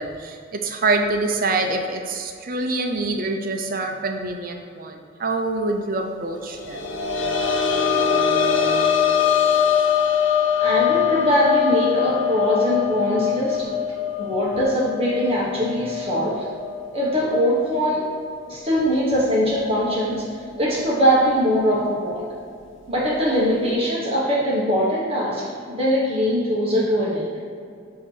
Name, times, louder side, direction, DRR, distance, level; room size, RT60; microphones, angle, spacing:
voice 1, 0.0-6.8, right 3 dB, 50° right, 3 dB, 0.6 m, -25 dB
sound 1, 6.5-18.0 18.3-18.4 20.0-20.1, left 7 dB, 75° left, 0.6 m, -23 dB
voice 2, 10.6-13.7 14.2-16.5 16.9-18.1 18.5-22.3 22.9-27.3, equal, 30° right, -6 dB, 1.2 m, -22 dB
8.4 x 2.9 x 6.3 m, 2.4 s
head